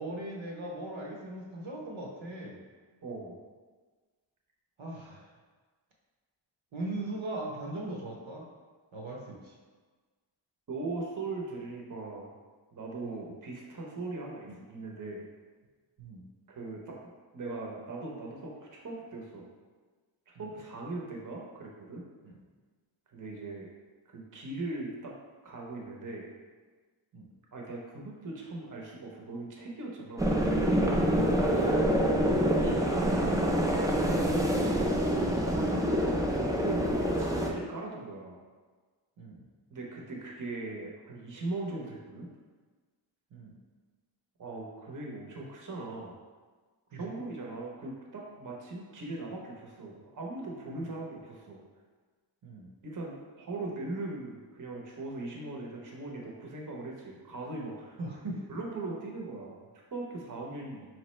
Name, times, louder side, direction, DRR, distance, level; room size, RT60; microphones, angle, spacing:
voice 1, 0.0-2.6 4.8-5.3 6.7-8.5 8.9-9.6 13.0-13.3 14.5-14.6 16.0-16.2 20.3-20.5 22.2-22.4 27.1-27.3 39.2-39.4 43.3-43.6 46.9-47.2 52.4-52.7 58.0-58.5, right 2 dB, 75° right, -1 dB, 0.8 m, -39 dB
voice 2, 3.0-3.4 10.7-12.4 12.7-15.2 16.5-17.0 17.3-19.5 20.3-22.0 23.1-23.7 24.1-25.1 25.4-26.3 27.5-30.3 31.3-31.9 32.2-33.5 34.4-35.3 35.7-38.4 39.7-42.3 44.4-46.2 46.9-51.6 52.8-58.0 58.5-60.8, right 2 dB, 40° right, -2 dB, 0.8 m, -39 dB
sound 1, 30.2-37.5, equal, 10° right, 0.4 m, -26 dB
4.7 x 3.1 x 3.1 m, 1.4 s
wide cardioid pair, 110°, 47 cm